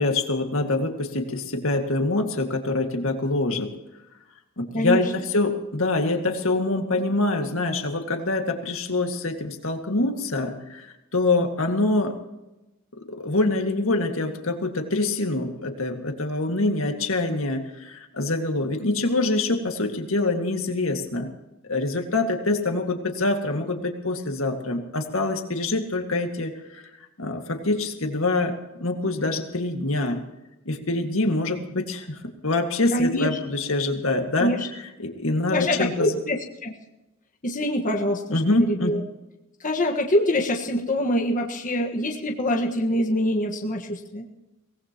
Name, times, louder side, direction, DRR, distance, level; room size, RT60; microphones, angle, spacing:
voice 1, 0.0-3.7 4.6-12.1 13.0-21.3 21.7-26.8 27.2-28.6 28.8-30.2 30.7-34.5 35.0-36.2 38.3-39.0, left 2 dB, 75° left, 4 dB, 2.1 m, -25 dB
voice 2, 4.7-5.1 32.9-33.4 34.4-34.7 35.5-36.7 37.4-39.0 39.6-44.3, left 1 dB, 40° left, 1 dB, 1.5 m, -25 dB
24.0 x 18.0 x 3.0 m, 0.99 s
head